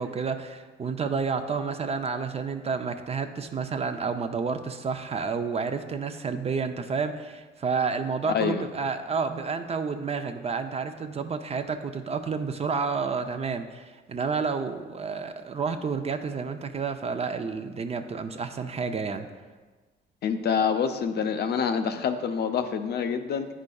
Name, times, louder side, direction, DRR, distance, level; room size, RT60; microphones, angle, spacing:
voice 1, 0.0-19.3, right 5 dB, 30° right, 8 dB, 0.4 m, -30 dB
voice 2, 8.3-8.6 20.2-23.5, left 6 dB, 55° left, 8 dB, 0.5 m, -26 dB
9.5 x 5.0 x 2.3 m, 1.3 s
cardioid pair, 90°, 20 cm